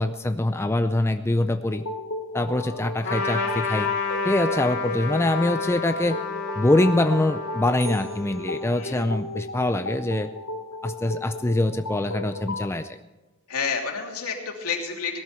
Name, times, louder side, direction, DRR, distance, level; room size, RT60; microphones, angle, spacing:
voice 1, 0.0-1.8 2.3-3.9 4.2-6.2 6.5-10.3 10.8-13.0, left 1 dB, 10° left, 8 dB, 0.4 m, -24 dB
sound 1, 1.7-12.7, left 2 dB, 65° left, 1.3 m, -35 dB
voice 2, 2.5-3.2 8.8-9.0 13.5-15.2, left 5 dB, 80° left, 1 dB, 2.9 m, -30 dB
Trumpet, 3.0-8.9, left 4 dB, 45° left, 3.3 m, -30 dB
sound 2, 7.8-9.6, right 7 dB, 60° right, 3.4 m, -47 dB
17.5 x 13.0 x 4.4 m, 1.1 s
head